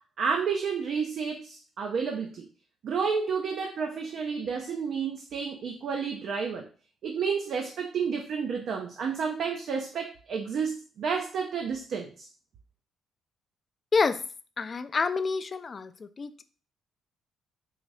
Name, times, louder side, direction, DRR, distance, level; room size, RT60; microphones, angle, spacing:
voice 1, 0.2-2.5 2.8-6.7 7.0-12.3, right 6 dB, 65° right, 2 dB, 0.5 m, -30 dB
voice 2, 14.6-16.4, left 4 dB, 40° left, 12 dB, 0.3 m, -28 dB
3.8 x 2.6 x 3.2 m, 0.39 s
cardioid pair, 90°, 0 cm